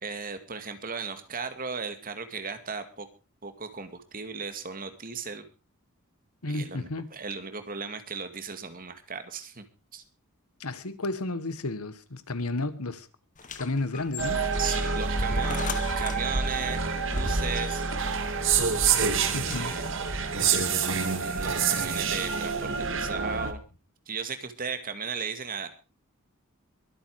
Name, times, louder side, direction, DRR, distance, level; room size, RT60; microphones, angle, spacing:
voice 1, 0.0-3.1 3.4-5.4 6.4-9.7 9.9-10.0 14.6-17.9 19.3-20.0 21.2-23.6 24.1-25.7, right 5 dB, 40° right, 2.1 m, -36 dB
voice 2, 6.4-7.1 10.6-13.1 13.5-14.4 19.3-19.7, left 2 dB, 90° left, 1.6 m, -32 dB
sound 1, 13.4-21.5, left 5 dB, 35° left, 1.4 m, -43 dB
sound 2, 14.2-23.5, right 5 dB, 60° right, 2.1 m, -27 dB
23.0 x 8.7 x 4.7 m
head